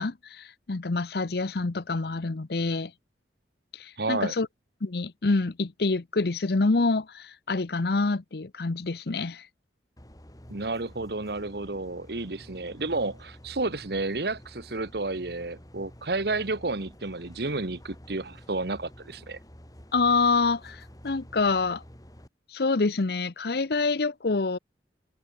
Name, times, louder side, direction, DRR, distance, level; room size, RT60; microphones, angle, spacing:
voice 1, 0.0-2.9 3.7-4.5 4.8-9.5 19.9-21.8 22.5-24.6, left 3 dB, 60° left, 0.8 m, -26 dB
voice 2, 4.0-4.3 10.5-19.4, right 3 dB, 65° right, 1.4 m, -31 dB
sound 1, 10.0-22.3, equal, 20° left, 4.2 m, -49 dB
head